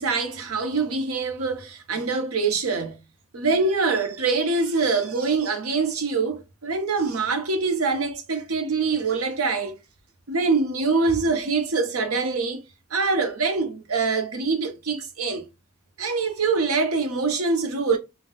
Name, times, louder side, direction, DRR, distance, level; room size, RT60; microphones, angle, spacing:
voice 1, 0.0-3.0 3.3-9.7 10.3-12.6 12.9-15.4 16.0-18.0, right 4 dB, 85° right, 0.9 m, -24 dB
5.4 x 2.3 x 2.4 m
head